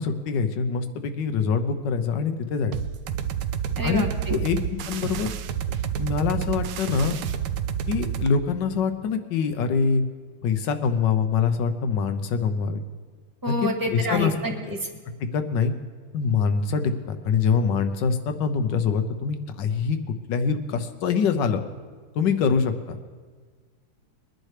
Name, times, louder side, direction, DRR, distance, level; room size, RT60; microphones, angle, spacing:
voice 1, 0.0-2.7 3.8-5.4 5.7-7.2 7.9-10.0 10.4-12.8 13.5-14.3 14.7-14.8 15.2-15.7 16.1-20.0 20.3-21.6 22.2-23.0, left 5 dB, 65° left, 9 dB, 1.4 m, -24 dB
sound 1, 2.7-8.3, right 8 dB, 70° right, 1.1 m, -29 dB
voice 2, 3.8-4.4 13.4-14.9, right 1 dB, 15° right, 3 dB, 0.8 m, -28 dB
21.5 x 10.5 x 3.3 m, 1.5 s
omnidirectional pair, 2.3 m